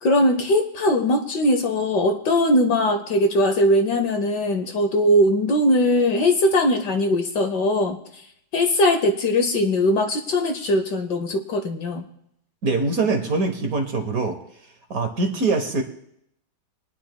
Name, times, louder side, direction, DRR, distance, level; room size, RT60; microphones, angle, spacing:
voice 1, 0.0-8.0 8.5-12.1, left 1 dB, 65° left, 7 dB, 1.3 m, -20 dB
voice 2, 12.6-14.4 14.9-15.8, right 3 dB, 50° right, 5 dB, 1.3 m, -23 dB
24.0 x 10.0 x 2.3 m, 0.75 s
omnidirectional pair, 2.3 m